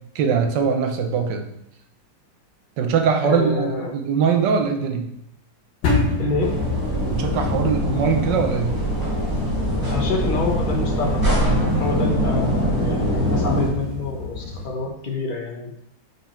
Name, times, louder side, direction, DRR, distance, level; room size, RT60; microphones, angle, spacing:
voice 1, 0.1-1.5 2.8-5.1 7.1-8.7, right 6 dB, 70° right, 5 dB, 1.4 m, -21 dB
voice 2, 3.2-3.9 6.2-6.5 9.9-11.5 11.8-15.8, left 3 dB, 45° left, 1 dB, 0.6 m, -27 dB
sound 1, 5.8-14.6, left 3 dB, 75° left, 1.9 m, -29 dB
sound 2, 6.4-13.7, equal, 10° right, 1.4 m, -23 dB
5.3 x 4.7 x 4.3 m, 0.78 s
omnidirectional pair, 2.0 m